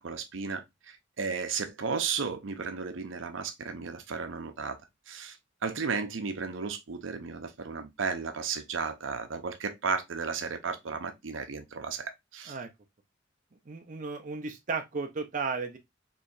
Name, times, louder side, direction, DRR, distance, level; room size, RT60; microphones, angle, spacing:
voice 1, 0.0-4.8 5.1-5.4 5.6-12.5, right 5 dB, 80° right, 0.6 m, -34 dB
voice 2, 13.7-15.8, right 4 dB, 40° right, 0.6 m, -34 dB
4.5 x 3.2 x 2.5 m
head